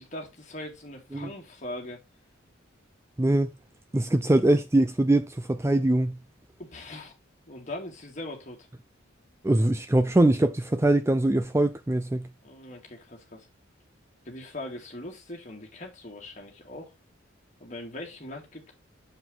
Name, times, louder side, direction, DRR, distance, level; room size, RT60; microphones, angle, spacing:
voice 1, 0.0-2.0 6.6-7.1 7.5-8.7 12.4-13.5 14.2-16.9 17.6-18.7, left 1 dB, 35° left, 2.3 m, -40 dB
voice 2, 3.2-3.5 3.9-6.2 9.4-12.3, right 1 dB, 15° right, 0.4 m, -22 dB
7.7 x 4.7 x 3.7 m
head